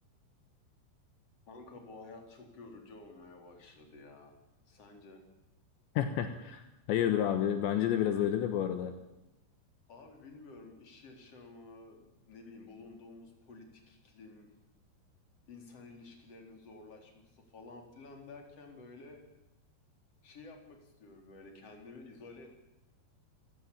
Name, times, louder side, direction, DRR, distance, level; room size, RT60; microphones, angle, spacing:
voice 1, 1.5-4.3 4.7-5.2 9.9-14.5 15.5-19.2 20.2-22.5, left 3 dB, 35° left, 3 dB, 4.6 m, -52 dB
voice 2, 6.0-8.9, left 10 dB, 75° left, 8 dB, 3.4 m, -30 dB
27.5 x 16.0 x 8.7 m, 0.97 s
omnidirectional pair, 5.4 m